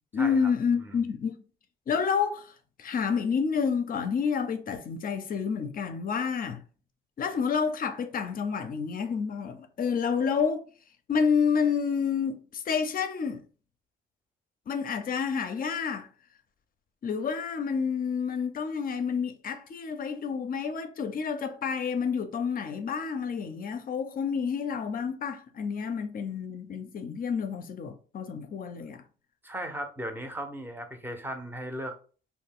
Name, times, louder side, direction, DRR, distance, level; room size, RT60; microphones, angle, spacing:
voice 1, 0.1-1.4 1.9-2.5 2.8-6.6 7.2-10.6 11.1-13.4 14.7-16.1 17.0-29.0, left 6 dB, 45° left, 0.5 m, -29 dB
voice 2, 29.4-31.9, right 1 dB, 10° right, 0.6 m, -36 dB
2.3 x 2.2 x 3.6 m
cardioid pair, 90°, 20 cm